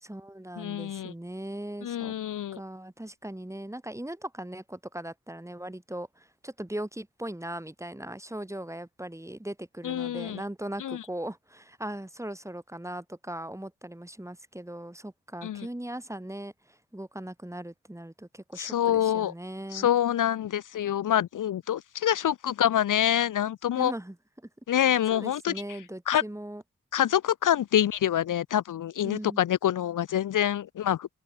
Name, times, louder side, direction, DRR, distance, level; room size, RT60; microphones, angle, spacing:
voice 1, 0.0-2.1 2.5-19.9 23.7-24.5 25.1-26.6 29.0-29.4, right 1 dB, 10° right, 1.5 m, -39 dB
voice 2, 0.6-1.1 1.8-2.6 9.8-10.4 10.8-11.0 15.4-15.7 18.6-19.3 19.7-23.9 24.7-25.5 26.1-26.2 26.9-31.1, left 10 dB, 70° left, 0.5 m, -26 dB
cardioid pair, 55°, 33 cm